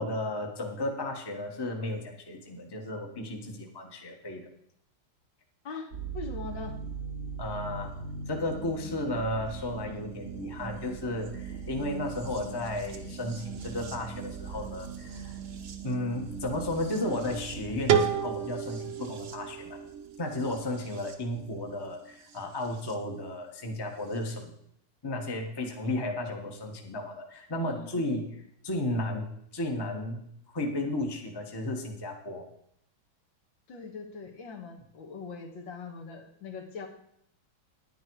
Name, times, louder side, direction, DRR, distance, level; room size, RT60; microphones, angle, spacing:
voice 1, 0.0-4.5 7.4-7.9 8.3-15.4 15.8-19.8 20.2-24.5 25.0-32.4, left 1 dB, 15° left, 2 dB, 1.0 m, -34 dB
voice 2, 5.6-6.8 27.6-28.1 33.7-36.9, left 4 dB, 65° left, 2 dB, 2.2 m, -41 dB
sound 1, 5.9-22.9 24.1-24.2, right 5 dB, 50° right, 1.0 m, -41 dB
sound 2, 17.9-20.7, right 8 dB, 70° right, 1.5 m, -30 dB
10.5 x 9.7 x 4.7 m, 0.73 s
omnidirectional pair, 2.2 m